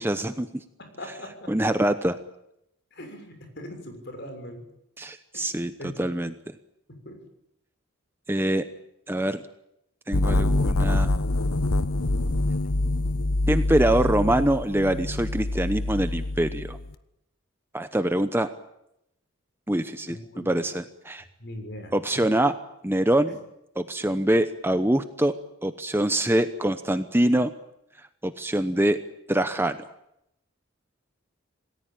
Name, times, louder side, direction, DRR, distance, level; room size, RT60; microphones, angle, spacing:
voice 1, 0.0-0.6 1.5-2.2 5.0-5.7 6.0-6.5 8.3-8.6 9.1-9.4 10.1-11.1 13.5-16.8 17.7-18.5 19.7-20.2 20.5-21.2 21.9-22.5 22.8-23.4 23.8-25.3 25.6-27.5 28.2-29.0 29.3-29.8, right 1 dB, 10° right, 9 dB, 0.9 m, -24 dB
voice 2, 0.8-1.5 2.9-4.6 5.3-5.4 5.8-6.0 7.0-7.2 20.1-20.5 21.4-21.9 23.3-23.4, left 1 dB, 50° left, 5 dB, 6.6 m, -40 dB
sound 1, 10.1-16.9, left 2 dB, 85° left, 1.1 m, -25 dB
27.5 x 19.0 x 9.2 m, 0.82 s
head